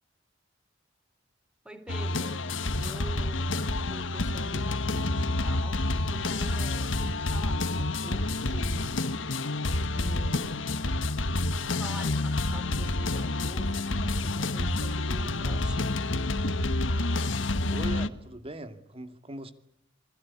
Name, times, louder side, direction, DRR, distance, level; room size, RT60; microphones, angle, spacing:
voice 1, 1.6-2.5 2.8-9.1 10.0-10.8 11.7-16.2, right 1 dB, 5° right, 3.5 m, -45 dB
sound 1, 1.9-18.1, left 2 dB, 75° left, 1.4 m, -28 dB
voice 2, 17.7-19.5, right 1 dB, 30° right, 2.3 m, -40 dB
29.0 x 21.5 x 8.5 m
head